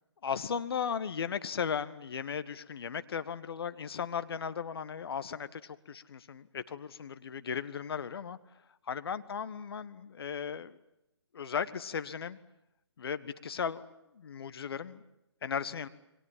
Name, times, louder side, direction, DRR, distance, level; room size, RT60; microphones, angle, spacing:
voice 1, 0.2-8.4 8.9-10.8 11.3-12.4 13.0-13.8 14.1-15.0 15.4-15.9, left 7 dB, 55° left, 13 dB, 1.6 m, -36 dB
29.0 x 23.0 x 7.5 m, 0.88 s
figure-of-eight pair, 140°, 15 cm